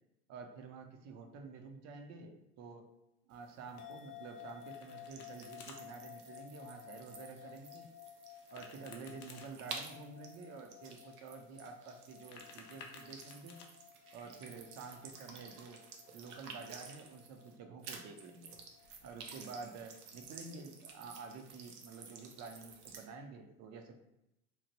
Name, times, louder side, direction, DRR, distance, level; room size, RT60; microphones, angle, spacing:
voice 1, 0.3-2.8 3.3-7.9 8.5-13.6 14.1-15.8 16.1-18.5 19.0-23.9, right 4 dB, 40° right, 4 dB, 0.5 m, -49 dB
sound 1, 3.3-17.6 17.8-23.1, right 5 dB, 80° right, 0.7 m, -53 dB
sound 2, 3.8-20.3, left 11 dB, 85° left, 0.6 m, -56 dB
Domestic sounds home sounds, 4.4-5.8 8.3-9.5 12.0-13.7, left 5 dB, 45° left, 0.6 m, -55 dB
3.0 x 2.1 x 2.9 m, 0.86 s
hypercardioid pair, 90°, 44 cm